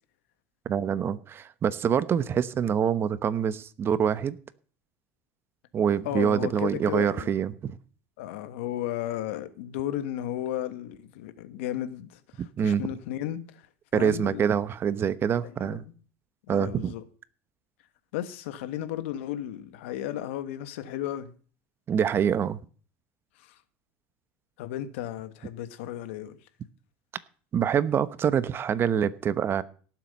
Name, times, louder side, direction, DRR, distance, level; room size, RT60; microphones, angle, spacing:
voice 1, 0.6-4.4 5.7-7.8 12.4-12.9 13.9-15.8 16.5-16.9 21.9-22.6 27.5-29.6, right 8 dB, 35° right, 1.1 m, -25 dB
voice 2, 6.0-7.3 8.2-13.7 13.9-14.4 15.4-16.0 16.5-17.0 18.1-21.3 23.4-23.6 24.6-26.4, left 12 dB, 80° left, 1.4 m, -34 dB
17.5 x 7.7 x 5.4 m
supercardioid pair, 105°, 7 cm